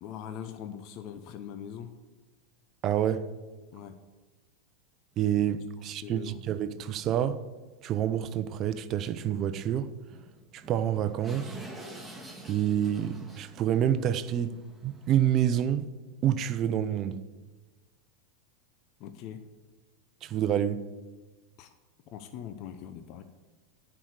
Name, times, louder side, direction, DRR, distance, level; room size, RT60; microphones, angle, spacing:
voice 1, 0.0-1.9 3.7-4.0 5.8-6.4 19.0-19.4 21.6-21.7 22.1-23.2, left 9 dB, 50° left, 0.7 m, -42 dB
voice 2, 2.8-3.3 5.2-7.4 7.8-9.9 10.5-11.6 12.5-14.6 14.8-15.9 16.2-17.2 20.2-20.8, right 10 dB, 40° right, 0.7 m, -28 dB
sound 1, 5.1-5.2 5.7-5.8 6.5-6.6 6.8-6.9 7.2-7.4 9.1-9.2 9.4-9.5 10.1-15.4, right 1 dB, 5° right, 1.8 m, -48 dB
10.5 x 4.8 x 8.1 m
hypercardioid pair, 95°, 0 cm